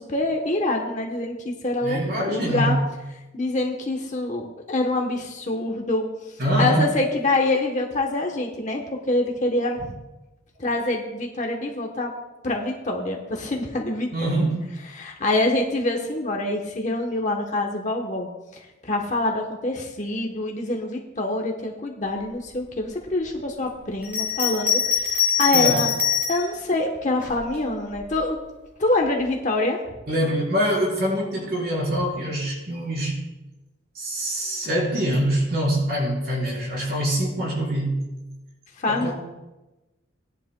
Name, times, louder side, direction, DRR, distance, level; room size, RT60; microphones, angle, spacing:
voice 1, 0.0-2.8 3.3-6.1 6.6-8.8 9.1-9.9 10.6-12.1 12.4-14.1 14.8-25.9 26.3-28.4 28.8-29.8 38.8-39.1, left 2 dB, 40° left, 1 dB, 1.0 m, -25 dB
voice 2, 1.8-2.8 6.4-6.9 14.1-14.6 25.5-25.8 30.1-33.2 33.9-38.0 38.9-39.1, right 1 dB, 50° right, -3 dB, 4.1 m, -24 dB
Bell, 24.0-26.5 27.2-28.1, left 7 dB, 10° right, 1.8 m, -23 dB
18.0 x 10.5 x 2.2 m, 1.0 s
head